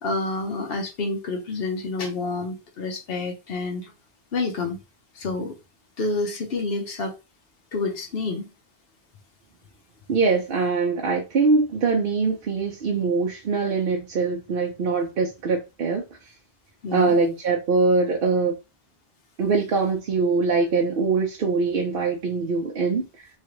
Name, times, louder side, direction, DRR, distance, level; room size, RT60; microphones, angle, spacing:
voice 1, 0.0-3.9 4.3-4.8 5.2-5.6 6.0-7.1 7.7-8.5 16.8-17.2, left 3 dB, 70° left, 0.9 m, -28 dB
voice 2, 10.1-16.0 16.9-18.6 19.4-23.3, right 4 dB, 65° right, 0.8 m, -23 dB
3.1 x 2.4 x 3.0 m
omnidirectional pair, 1.1 m